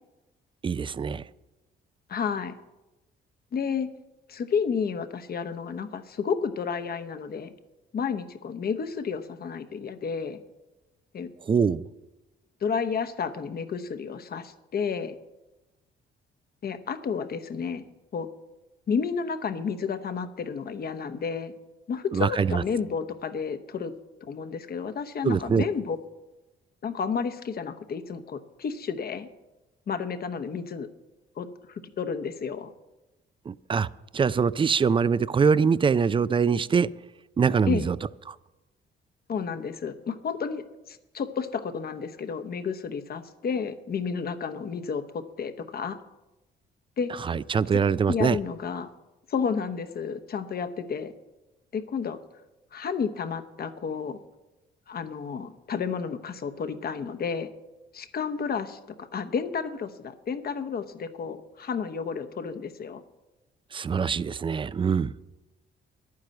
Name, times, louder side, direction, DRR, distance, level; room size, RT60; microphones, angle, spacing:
voice 1, 0.6-1.2 11.5-11.8 22.1-22.6 25.2-25.6 33.5-33.9 34.1-36.9 37.4-38.0 38.3-38.4 47.3-48.4 63.7-65.1, right 6 dB, 25° right, 0.4 m, -23 dB
voice 2, 2.1-2.6 3.5-3.9 4.3-7.5 7.9-10.4 11.1-11.3 12.6-15.2 16.6-17.8 18.1-18.3 18.9-21.5 21.9-23.9 24.2-26.0 26.8-29.3 29.9-30.9 31.4-32.7 37.7-37.9 39.3-46.0 47.0-47.1 48.1-48.9 49.3-51.1 51.7-52.2 52.7-54.2 54.9-57.5 57.9-63.0, left 6 dB, 50° left, 1.0 m, -31 dB
10.5 x 9.6 x 7.6 m
cardioid pair, 90°, 20 cm